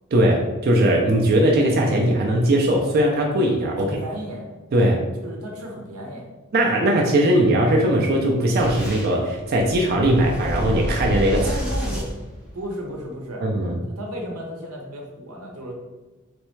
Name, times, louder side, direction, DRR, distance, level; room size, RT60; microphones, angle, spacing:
voice 1, 0.1-4.0 4.7-5.0 6.5-11.4 13.4-13.8, right 1 dB, 45° right, -1 dB, 0.4 m, -19 dB
voice 2, 3.8-4.5 5.2-6.3 11.3-12.1 12.5-13.5 13.8-15.7, equal, 90° right, 0 dB, 0.9 m, -34 dB
Boom, 8.6-13.0, equal, 5° right, 0.7 m, -29 dB
3.4 x 3.1 x 3.1 m, 1.1 s
head